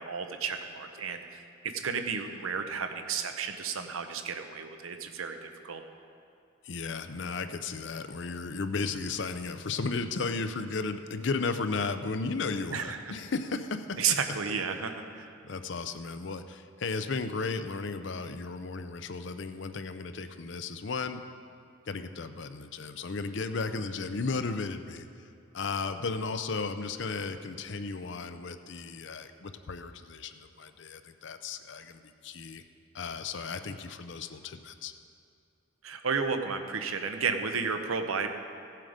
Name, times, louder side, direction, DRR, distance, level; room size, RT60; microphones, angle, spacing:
voice 1, 0.0-5.8 12.7-13.1 14.0-15.4 35.8-38.3, right 5 dB, 90° right, 6 dB, 0.9 m, -32 dB
voice 2, 6.6-14.2 15.4-21.2 21.9-25.1 25.5-32.6 32.9-34.9, left 4 dB, 60° left, 10 dB, 0.5 m, -34 dB
16.0 x 7.5 x 5.1 m, 2.5 s
head